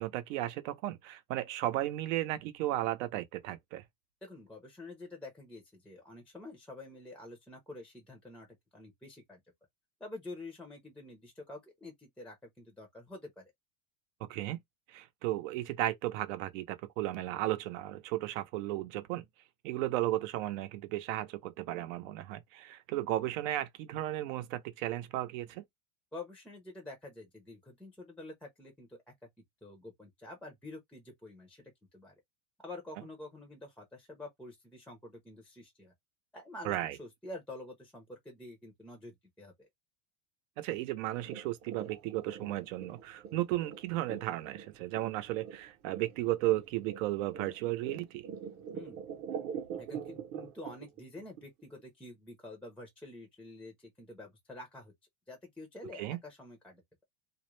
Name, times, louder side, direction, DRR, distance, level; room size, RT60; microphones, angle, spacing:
voice 1, 0.0-3.8 14.3-14.6 14.9-19.3 19.6-25.6 36.6-37.0 40.6-48.3 55.9-56.2, right 15 dB, 70° right, 0.7 m, -34 dB
voice 2, 4.2-8.5 8.7-9.4 10.0-13.4 26.1-29.1 29.6-31.6 31.9-32.1 32.6-35.9 36.3-39.7 48.7-49.0 49.8-54.9 55.3-56.8, left 2 dB, 5° left, 0.6 m, -48 dB
sound 1, 41.2-51.4 51.8-51.9, right 8 dB, 40° right, 0.8 m, -43 dB
2.4 x 2.1 x 3.1 m
supercardioid pair, 135°, 41 cm